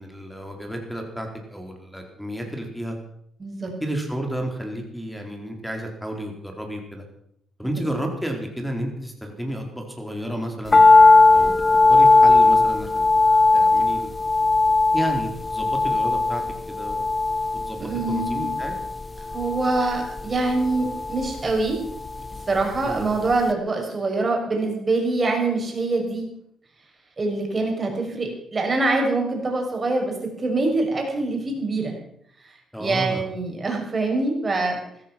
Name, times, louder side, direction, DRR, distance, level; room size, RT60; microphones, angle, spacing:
voice 1, 0.0-3.0 3.8-7.0 7.6-10.8 11.3-11.6 11.9-14.2 14.9-16.4 16.7-17.0 17.5-18.7 22.8-23.1 32.7-33.2, equal, ahead, 3 dB, 4.4 m, -31 dB
voice 2, 3.4-3.7 7.8-7.9 17.8-18.5 19.3-21.8 22.3-26.2 27.2-32.0 32.8-34.8, right 3 dB, 30° right, 1 dB, 6.3 m, -24 dB
sound 1, 10.7-23.0 23.3-23.4, left 3 dB, 25° left, 1.0 m, -18 dB
16.0 x 14.0 x 6.2 m, 0.71 s
cardioid pair, 90°, 0 cm